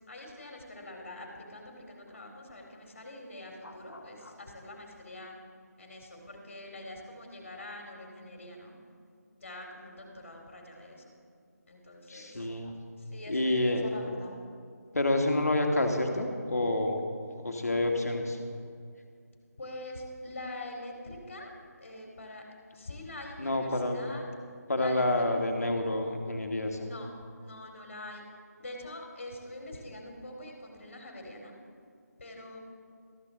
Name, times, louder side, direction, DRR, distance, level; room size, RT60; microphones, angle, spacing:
voice 1, 0.1-5.3 5.8-8.7 9.4-11.0 11.7-12.3 13.1-14.3 19.6-21.5 21.8-22.4 22.8-24.2 24.8-25.4 26.8-27.1 27.4-28.2 28.6-31.5 32.2-32.6, left 2 dB, 45° left, 1 dB, 2.5 m, -44 dB
voice 2, 3.6-4.3 12.1-12.7 13.3-13.9 14.9-17.0 17.4-18.4 23.4-24.1 24.7-26.9, left 2 dB, 65° left, 4 dB, 1.6 m, -29 dB
13.5 x 13.0 x 3.8 m, 2.2 s
figure-of-eight pair, 160°, 9 cm